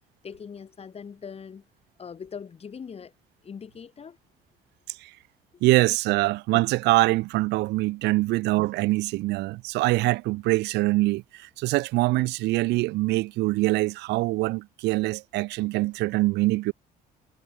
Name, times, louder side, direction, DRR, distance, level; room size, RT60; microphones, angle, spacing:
voice 1, 0.2-1.6 2.0-3.1 3.4-4.2, left 6 dB, 35° left, 5.6 m, -41 dB
voice 2, 5.6-16.7, right 20 dB, 90° right, 2.3 m, -24 dB
cardioid pair, 110°, 17 cm